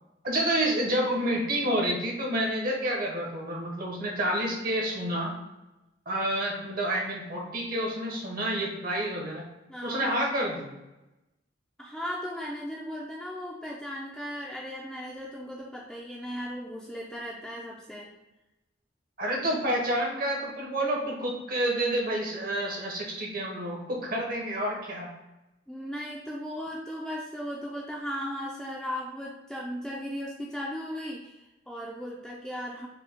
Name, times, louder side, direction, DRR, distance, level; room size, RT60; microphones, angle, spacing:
voice 1, 0.2-5.3 6.1-9.4 9.8-10.7 19.2-25.1, right 1 dB, 55° right, -1 dB, 1.0 m, -29 dB
voice 2, 9.7-10.0 11.8-18.1 25.7-32.9, equal, 5° left, -4 dB, 0.4 m, -37 dB
5.0 x 2.2 x 3.5 m, 0.99 s
head